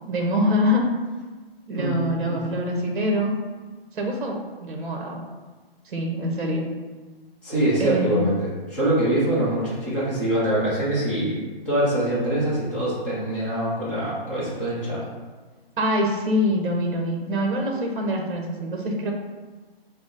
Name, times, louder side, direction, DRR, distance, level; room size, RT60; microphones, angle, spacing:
voice 1, 0.1-0.9 1.7-3.3 3.9-5.2 5.9-6.7 7.8-8.2 15.8-19.1, left 1 dB, 55° right, 1 dB, 0.9 m, -24 dB
voice 2, 1.7-2.4 7.4-11.4 11.6-15.0, right 1 dB, 5° left, -10 dB, 0.6 m, -24 dB
5.8 x 2.1 x 3.8 m, 1.3 s
hypercardioid pair, 155°, 30 cm